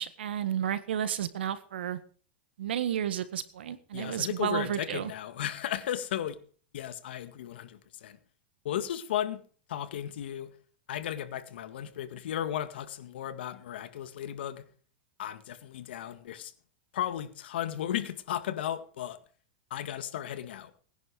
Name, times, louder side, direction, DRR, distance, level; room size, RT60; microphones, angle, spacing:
voice 1, 0.0-2.0 2.6-5.1, right 10 dB, 90° right, 13 dB, 1.5 m, -32 dB
voice 2, 3.9-6.4 6.7-8.2 8.6-9.4 9.7-10.5 10.9-14.6 15.2-16.5 16.9-19.2 19.7-20.7, left 11 dB, 75° left, 10 dB, 1.9 m, -35 dB
19.0 x 10.5 x 5.0 m, 0.43 s
supercardioid pair, 150°, 6 cm